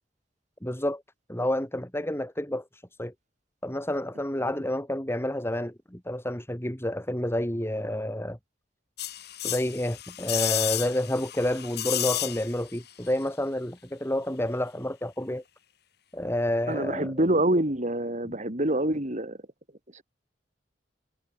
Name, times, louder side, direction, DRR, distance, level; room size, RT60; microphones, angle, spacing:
voice 1, 0.6-1.0 1.3-3.1 3.6-8.4 9.4-15.4 16.1-17.1, left 1 dB, 15° left, 4.6 m, -29 dB
sound 1, 9.0-12.8 13.1-13.2, left 13 dB, 65° left, 7.6 m, -31 dB
voice 2, 16.7-19.4 19.9-20.0, right 1 dB, 40° right, 5.1 m, -26 dB
head